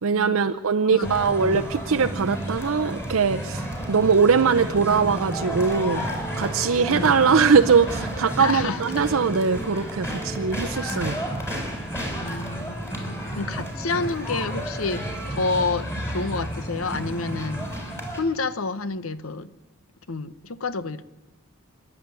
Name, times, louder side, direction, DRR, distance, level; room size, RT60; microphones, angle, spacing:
voice 1, 0.0-6.0 6.4-11.2, right 5 dB, 75° right, 6 dB, 0.6 m, -21 dB
voice 2, 0.8-1.1 1.4-1.6 6.6-7.1 8.4-8.8 12.1-17.6 18.2-19.5 20.1-21.0, left 3 dB, 75° left, 14 dB, 1.0 m, -29 dB
sound 1, 1.0-18.2, equal, 15° left, 4.4 m, -31 dB
27.0 x 11.0 x 9.1 m, 1.2 s
head